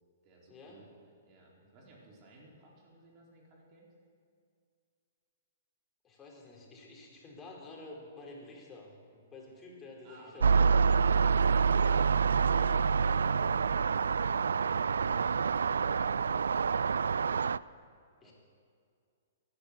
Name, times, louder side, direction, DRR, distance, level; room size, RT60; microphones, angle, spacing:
voice 1, 0.2-0.9 1.2-3.9 10.0-11.4 18.2-18.3, right 1 dB, 40° right, -2 dB, 4.5 m, -57 dB
voice 2, 6.0-10.5 10.8-11.2 12.5-12.8 18.2-18.3, left 2 dB, 20° left, -3 dB, 4.5 m, -50 dB
sound 1, 10.4-17.6, right 5 dB, 85° right, 0.3 m, -27 dB
15.0 x 11.5 x 8.3 m, 2.2 s
hypercardioid pair, 130°, 0 cm